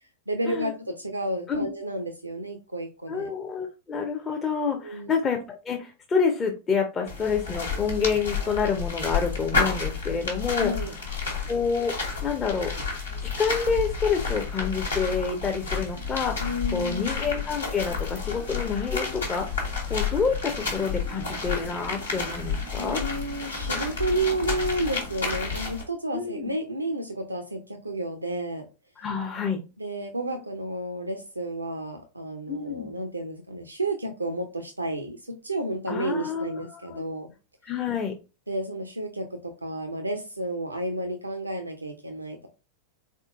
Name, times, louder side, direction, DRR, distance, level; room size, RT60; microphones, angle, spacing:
voice 1, 0.3-3.3 4.6-5.1 10.6-10.9 16.4-17.2 22.8-28.7 29.8-37.3 38.5-42.5, right 1 dB, 85° right, 5 dB, 0.5 m, -31 dB
voice 2, 3.1-10.7 11.5-11.9 12.2-12.7 13.2-23.0 26.1-26.5 29.0-29.6 32.5-32.9 35.9-37.0 37.6-38.1, left 5 dB, 25° left, 3 dB, 0.6 m, -28 dB
sound 1, 7.1-25.8, left 4 dB, 75° left, 1.5 m, -31 dB
4.0 x 3.7 x 2.4 m, 0.30 s
figure-of-eight pair, 90°, 0 cm